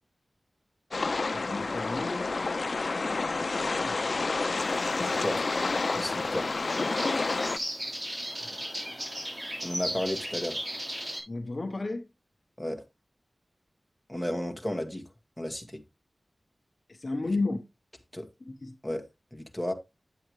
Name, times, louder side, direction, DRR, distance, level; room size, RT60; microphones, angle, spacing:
sound 1, 0.9-7.6, left 3 dB, 65° left, 0.5 m, -29 dB
voice 1, 1.3-2.3 8.3-9.5 11.3-12.0 17.0-17.6 18.5-18.7, left 3 dB, 45° left, 0.9 m, -33 dB
sound 2, 4.6-11.2, equal, 35° right, 6.2 m, -37 dB
voice 2, 5.0-5.4 5.9-6.5 9.6-10.6 12.6-12.8 14.1-15.0 15.4-15.8 17.2-17.3 18.1-18.3 18.8-19.0 19.3-19.7, left 1 dB, 5° left, 1.6 m, -33 dB
9.4 x 7.9 x 3.1 m
wide cardioid pair, 90°, 0 cm